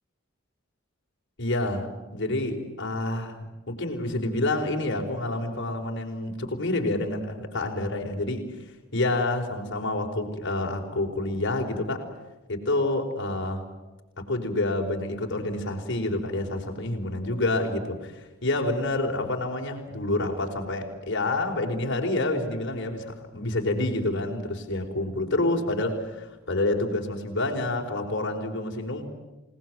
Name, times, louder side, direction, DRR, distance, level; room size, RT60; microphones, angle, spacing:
voice 1, 1.4-8.5 8.9-12.1 12.5-13.6 14.2-29.1, left 2 dB, 60° left, 2 dB, 4.6 m, -28 dB
28.5 x 19.5 x 9.4 m, 1.2 s
head